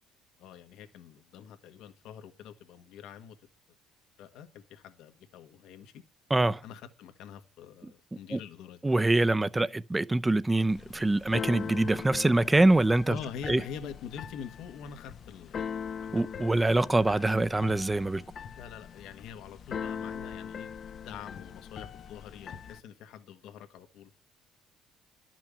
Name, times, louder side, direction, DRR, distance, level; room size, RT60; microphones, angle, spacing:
voice 1, 0.4-3.4 4.2-6.0 6.6-8.9 12.2-12.3 13.1-15.8 16.1-16.3 18.6-20.7 21.0-24.1, left 7 dB, 75° left, 1.6 m, -45 dB
voice 2, 8.8-13.1 13.5-13.6 16.1-18.2, right 2 dB, 15° right, 0.6 m, -24 dB
Keyboard (musical), 10.7-22.8, left 7 dB, 50° left, 0.7 m, -41 dB
12.0 x 6.1 x 8.8 m
cardioid pair, 105°, 0 cm